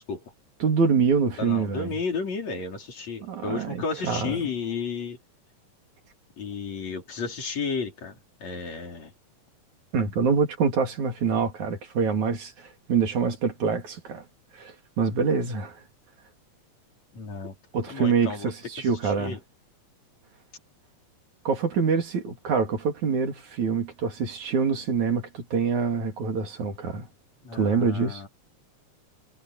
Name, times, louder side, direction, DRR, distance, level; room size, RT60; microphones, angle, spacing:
voice 1, 0.6-1.9 3.2-4.5 9.9-14.2 14.5-15.8 17.7-19.4 21.5-27.1 27.5-28.2, right 5 dB, 65° right, 4.2 m, -25 dB
voice 2, 1.4-5.2 6.4-9.1 17.1-17.5 17.9-18.5 18.8-19.4 27.4-28.3, left 5 dB, 55° left, 5.9 m, -33 dB
omnidirectional pair, 3.7 m